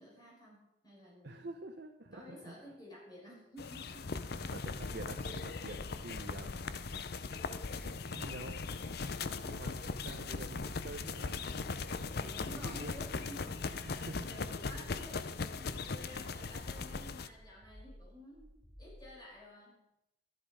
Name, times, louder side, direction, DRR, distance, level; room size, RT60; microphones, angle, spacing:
voice 1, 0.0-1.5 2.1-4.4 12.2-13.9 14.2-18.5 18.8-19.9, equal, 20° left, -4 dB, 5.0 m, -52 dB
voice 2, 1.2-2.6 4.5-6.8 7.8-8.6 9.4-11.5 12.5-12.9 13.8-14.3, right 2 dB, 60° right, 3 dB, 0.9 m, -47 dB
sound 1, 3.6-17.3, left 4 dB, 55° left, 0.6 m, -39 dB
sound 2, 17.2-19.1, equal, 10° right, 3.8 m, -55 dB
12.5 x 11.0 x 4.9 m, 0.89 s
head